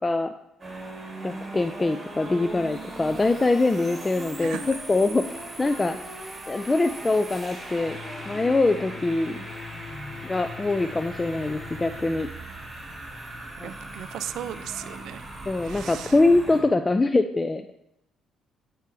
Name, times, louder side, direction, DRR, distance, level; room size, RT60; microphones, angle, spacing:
voice 1, 0.0-0.3 1.2-4.6 4.9-5.2 5.6-6.0 6.5-8.0 8.3-9.4 10.2-12.3 13.6-13.7 15.5-17.7, left 2 dB, 25° left, 8 dB, 0.4 m, -23 dB
sound 1, 0.6-16.6, right 2 dB, 30° right, 2.4 m, -39 dB
voice 2, 4.4-4.8 13.6-15.3 15.6-16.2, right 10 dB, 70° right, 14 dB, 0.3 m, -37 dB
sound 2, 7.9-12.0, left 6 dB, 65° left, 0.9 m, -42 dB
8.3 x 4.5 x 3.3 m, 0.83 s
hypercardioid pair, 55°, 0 cm